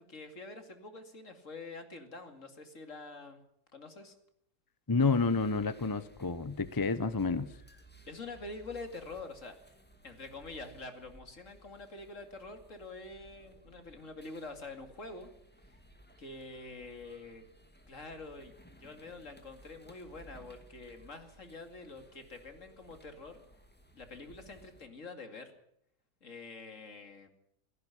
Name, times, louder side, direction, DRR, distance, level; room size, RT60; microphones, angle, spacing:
voice 1, 0.0-3.4 3.7-4.1 8.1-9.6 10.0-15.3 16.2-17.5 17.9-18.5 18.8-23.4 23.9-25.5 26.2-27.3, left 3 dB, 50° left, 7 dB, 2.7 m, -46 dB
voice 2, 4.9-7.5, left 4 dB, 25° left, 14 dB, 0.4 m, -29 dB
sound 1, 5.0-24.9, right 1 dB, 5° left, 2.2 m, -59 dB
17.0 x 15.5 x 9.9 m, 0.76 s
omnidirectional pair, 1.8 m